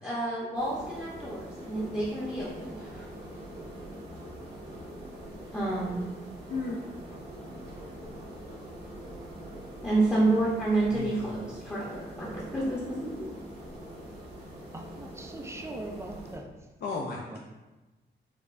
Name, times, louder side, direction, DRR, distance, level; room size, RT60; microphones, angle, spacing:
voice 1, 0.0-3.0 5.5-6.0 9.8-13.1, right 2 dB, 15° left, -8 dB, 0.7 m, -29 dB
sound 1, 0.5-16.4, right 1 dB, 90° right, 1.1 m, -44 dB
voice 2, 6.5-6.8 10.9-11.3 16.8-17.4, left 4 dB, 60° left, -2 dB, 0.4 m, -34 dB
voice 3, 14.7-16.5 17.1-17.4, right 2 dB, 15° right, 3 dB, 0.3 m, -41 dB
4.4 x 2.3 x 2.4 m, 1.1 s
wide cardioid pair, 120°, 19 cm